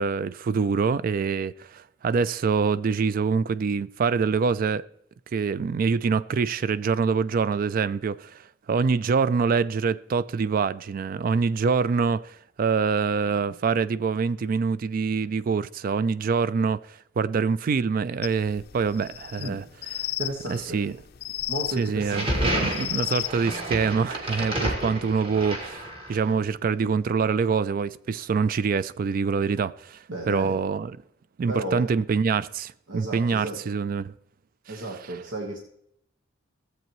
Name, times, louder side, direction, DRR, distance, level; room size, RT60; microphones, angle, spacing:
voice 1, 0.0-4.8 5.3-16.8 17.2-19.6 20.5-21.0 21.8-31.0 31.4-34.1 34.7-34.8, right 5 dB, 45° right, 0.3 m, -25 dB
sound 1, 18.2-23.9, left 14 dB, 55° left, 0.4 m, -34 dB
voice 2, 20.2-20.8 21.5-22.8 30.1-30.6 31.5-31.9 32.9-33.6 34.7-35.6, right 1 dB, 80° right, 1.3 m, -34 dB
sound 2, 22.0-26.3, equal, 30° right, 1.7 m, -30 dB
15.0 x 7.8 x 3.0 m
head